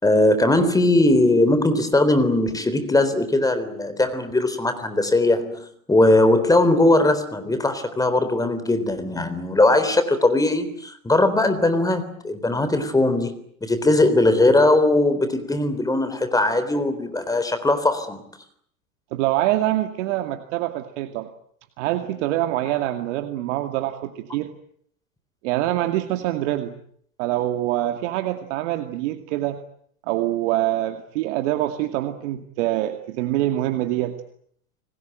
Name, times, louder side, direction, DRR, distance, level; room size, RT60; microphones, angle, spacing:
voice 1, 0.0-18.3, left 2 dB, 10° left, 11 dB, 3.8 m, -20 dB
voice 2, 19.1-21.3 21.8-24.5 25.4-26.7 27.2-29.6 30.1-34.2, right 14 dB, 55° right, 7 dB, 2.4 m, -25 dB
29.0 x 20.0 x 9.2 m, 0.66 s
hypercardioid pair, 115°, 42 cm